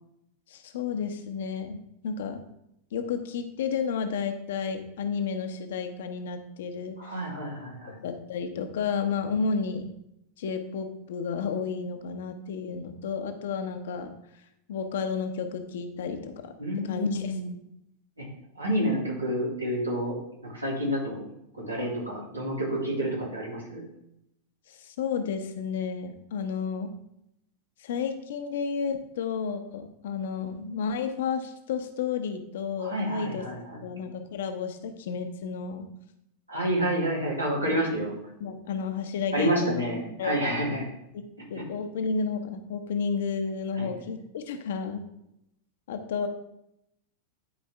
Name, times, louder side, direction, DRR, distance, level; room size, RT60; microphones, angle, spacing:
voice 1, 0.5-2.4 2.9-7.3 8.0-9.9 10.4-14.1 14.7-17.4 24.7-26.9 27.8-35.9 37.6-37.8 38.4-39.8 40.2-40.8 41.5-45.0 45.9-46.3, left 6 dB, 60° left, 7 dB, 0.9 m, -32 dB
voice 2, 7.0-7.9 16.6-17.5 18.2-18.3 18.5-20.2 20.4-21.2 21.6-23.9 32.8-33.8 36.5-38.1 39.3-40.8 41.5-41.6 43.8-43.9, equal, 85° right, -6 dB, 3.2 m, -29 dB
11.5 x 4.5 x 3.5 m, 0.80 s
figure-of-eight pair, 90°, 0 cm